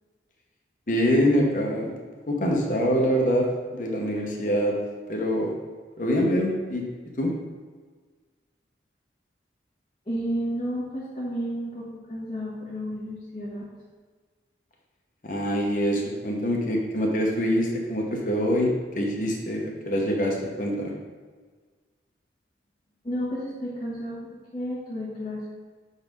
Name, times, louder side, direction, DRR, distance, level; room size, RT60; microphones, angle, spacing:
voice 1, 0.9-1.9 2.3-3.5 3.7-4.7 5.1-5.5 6.0-6.8 7.2-7.3 15.2-18.7 18.9-20.9, equal, 45° left, -1 dB, 1.0 m, -24 dB
voice 2, 10.0-13.6 23.0-24.2 24.5-25.5, equal, 25° left, -11 dB, 1.5 m, -31 dB
6.1 x 4.1 x 5.2 m, 1.5 s
head